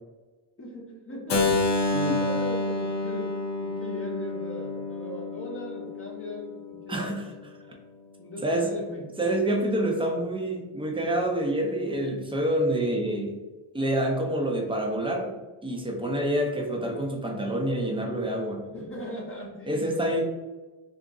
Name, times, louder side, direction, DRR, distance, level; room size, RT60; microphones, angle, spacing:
voice 1, 0.6-1.8 2.2-7.1 8.2-9.1 18.7-20.2, left 1 dB, 25° left, -1 dB, 0.8 m, -39 dB
Keyboard (musical), 1.3-7.1, left 2 dB, 60° left, 0.8 m, -29 dB
voice 2, 6.9-7.3 8.4-8.7 9.2-13.4 13.7-15.3 15.6-18.6 19.6-20.2, right 1 dB, 10° right, 1 dB, 0.6 m, -27 dB
2.8 x 2.5 x 3.6 m, 1.2 s
cardioid pair, 105°, 47 cm